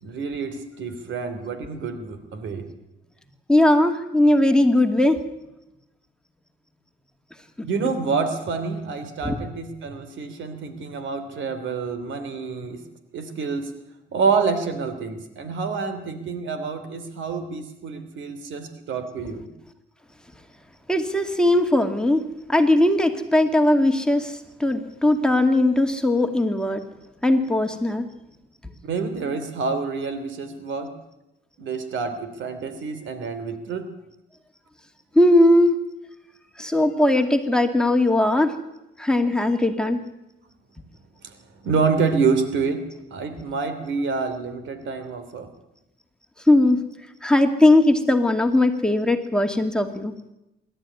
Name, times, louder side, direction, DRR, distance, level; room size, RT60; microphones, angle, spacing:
voice 1, 0.0-2.6 7.6-12.8 13.1-13.7 14.1-19.5 28.8-30.9 31.6-33.9 41.2-41.3 41.6-42.8 43.1-45.5, right 5 dB, 70° right, 10 dB, 2.9 m, -27 dB
voice 2, 3.5-5.2 9.2-9.4 20.9-22.2 22.5-26.8 27.2-28.1 35.1-35.8 36.6-38.5 39.0-40.0 46.5-46.8 47.2-50.1, left 1 dB, 5° left, 5 dB, 2.3 m, -19 dB
25.5 x 12.5 x 9.8 m, 0.92 s
cardioid pair, 90°, 20 cm